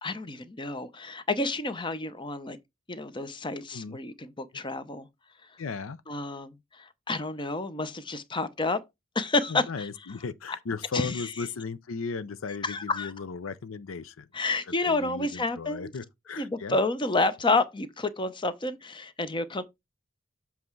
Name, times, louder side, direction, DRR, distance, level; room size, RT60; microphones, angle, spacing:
voice 1, 0.0-2.6 2.9-5.1 6.1-8.8 9.1-9.9 10.9-11.1 12.6-13.1 14.3-15.9 16.4-19.6, left 2 dB, 25° left, 0.7 m, -29 dB
voice 2, 5.6-6.0 9.5-14.3 14.8-16.8, left 4 dB, 85° left, 0.6 m, -36 dB
7.7 x 3.5 x 4.5 m
head